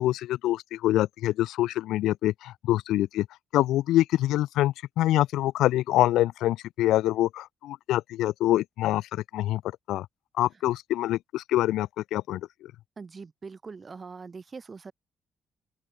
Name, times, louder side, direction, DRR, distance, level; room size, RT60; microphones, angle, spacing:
voice 1, 0.0-3.3 3.5-9.6 9.9-10.1 10.3-12.7, left 14 dB, 85° left, 1.1 m, -25 dB
voice 2, 13.0-14.9, right 4 dB, 35° right, 7.3 m, -42 dB
open air
cardioid pair, 90°, 0 cm